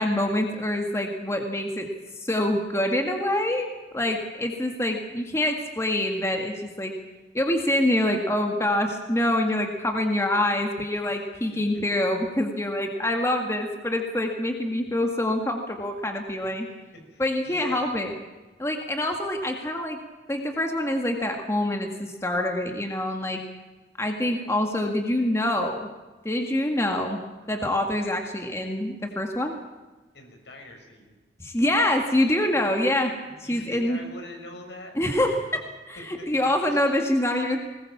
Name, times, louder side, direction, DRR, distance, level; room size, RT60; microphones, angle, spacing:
voice 1, 0.0-1.9 2.2-3.7 3.9-6.9 7.3-16.7 17.2-18.2 18.6-20.0 20.3-23.4 24.0-25.9 26.2-27.2 27.5-29.5 31.4-33.1 33.4-34.0 35.0-35.4 35.9-37.6, left 1 dB, 15° left, 3 dB, 1.9 m, -25 dB
voice 2, 17.1-17.9 30.1-31.1 32.5-32.7 33.2-34.9 36.7-36.8, left 1 dB, 80° left, 3 dB, 6.1 m, -43 dB
20.5 x 20.0 x 7.3 m, 1.2 s
head